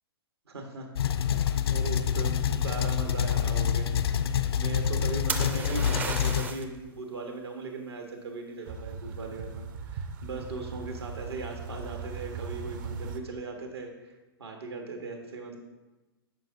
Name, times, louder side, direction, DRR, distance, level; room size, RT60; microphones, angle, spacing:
voice 1, 0.5-1.2 1.7-14.1 14.4-15.6, right 3 dB, 80° right, 3 dB, 1.4 m, -39 dB
sound 1, 1.0-6.5, left 9 dB, 70° left, 0.4 m, -27 dB
sound 2, 1.7-5.5 8.7-13.2, right 5 dB, 50° right, 0.6 m, -40 dB
sound 3, 5.3-6.8 10.4-10.9, right 4 dB, 15° right, 0.4 m, -34 dB
9.1 x 5.9 x 2.7 m, 1.1 s
hypercardioid pair, 115°, 13 cm